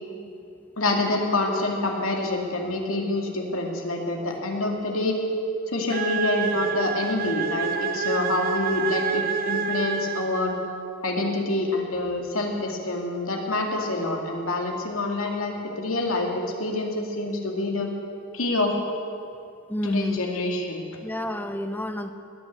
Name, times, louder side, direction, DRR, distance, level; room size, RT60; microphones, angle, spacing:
voice 1, 0.8-5.2 5.7-10.6 11.0-16.3 16.6-17.9 18.3-18.8 19.8-20.8, left 2 dB, 80° left, 1 dB, 2.4 m, -26 dB
sound 1, 5.9-10.8, right 6 dB, 45° right, 0.8 m, -28 dB
voice 2, 19.7-20.2 21.0-22.1, left 1 dB, 10° left, 8 dB, 0.8 m, -29 dB
19.0 x 9.4 x 8.2 m, 2.4 s
head